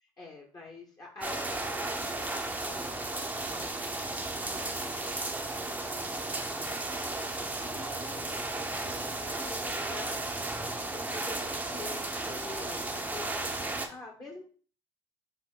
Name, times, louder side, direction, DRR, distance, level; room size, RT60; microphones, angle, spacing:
voice 1, 0.0-2.3 2.6-3.9 4.2-5.1 6.0-6.7 7.0-10.3 10.9-14.4, left 3 dB, 30° left, -1 dB, 1.2 m, -47 dB
sound 1, 1.2-13.9, right 2 dB, 10° right, 0.7 m, -34 dB
6.1 x 2.1 x 3.8 m, 0.41 s
hypercardioid pair, 70°, 13 cm